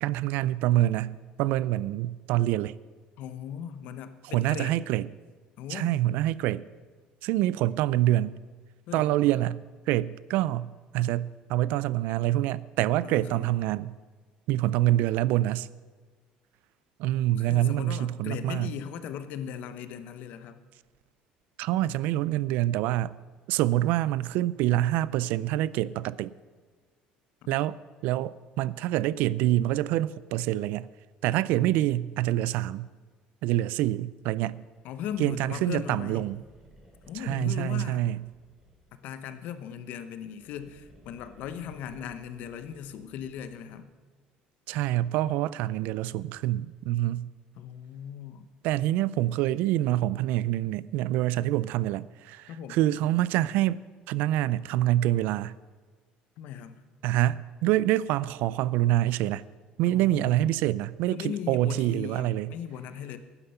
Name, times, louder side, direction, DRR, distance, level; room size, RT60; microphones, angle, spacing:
voice 1, 0.0-2.8 4.3-5.1 5.7-6.7 7.2-8.4 8.9-14.0 14.5-15.7 17.0-18.7 21.6-23.2 23.5-26.3 27.5-27.8 28.0-30.9 31.2-32.9 33.4-34.6 35.2-36.4 37.2-38.2 44.7-47.3 48.6-55.5 57.0-59.4 59.8-62.5, right 14 dB, 75° right, 0.4 m, -26 dB
voice 2, 3.2-4.8 5.6-6.0 8.9-9.1 13.0-13.5 17.1-20.6 27.5-27.6 34.8-36.3 37.1-38.1 38.9-43.9 47.5-48.5 52.5-52.8 56.4-56.8 59.9-60.5 61.1-63.2, left 9 dB, 65° left, 0.9 m, -38 dB
sound 1, 34.8-39.2 40.1-43.8, equal, 15° right, 3.1 m, -58 dB
12.5 x 9.7 x 5.6 m
cardioid pair, 120°, 3 cm